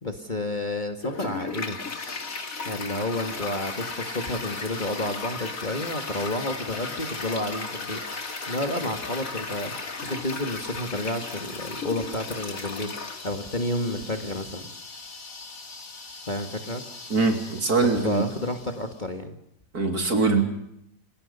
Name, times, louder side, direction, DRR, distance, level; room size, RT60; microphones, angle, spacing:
voice 1, 0.0-1.8 2.6-8.0 8.5-9.7 10.0-13.0 13.2-14.7 16.3-16.8 17.8-19.4, left 1 dB, 25° left, 5 dB, 2.0 m, -30 dB
Toilet flush, 1.0-18.9, left 4 dB, 50° left, 2.8 m, -36 dB
voice 2, 17.1-18.2 19.7-20.4, right 4 dB, 55° right, 4 dB, 3.8 m, -22 dB
30.0 x 19.0 x 5.6 m, 0.77 s
omnidirectional pair, 1.9 m